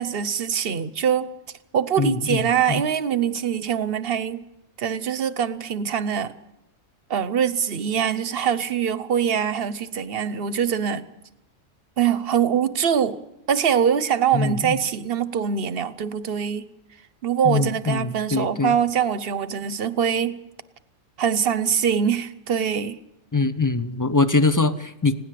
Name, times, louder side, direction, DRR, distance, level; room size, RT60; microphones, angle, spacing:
voice 1, 0.0-1.3 1.7-4.4 4.8-6.3 7.1-11.1 12.0-13.2 13.5-16.7 17.2-20.4 21.2-23.0, right 8 dB, 50° right, 1.0 m, -23 dB
voice 2, 2.0-2.4 2.7-2.8 14.3-14.5 17.4-18.7 23.3-25.1, left 3 dB, 20° left, 0.6 m, -22 dB
20.0 x 17.0 x 7.6 m
omnidirectional pair, 1.3 m